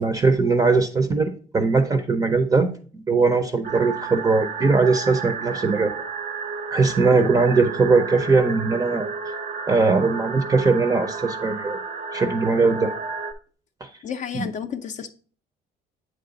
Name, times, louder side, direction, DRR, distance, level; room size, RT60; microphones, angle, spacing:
voice 1, 0.0-5.9 6.7-9.1 9.7-11.8 12.1-12.9 13.8-13.9 14.3-14.5, right 4 dB, 20° right, 0.5 m, -20 dB
sound 1, 3.6-13.3, right 5 dB, 65° right, 0.7 m, -32 dB
voice 2, 14.0-15.1, left 7 dB, 45° left, 0.4 m, -31 dB
7.9 x 3.2 x 3.8 m
cardioid pair, 110°, 17 cm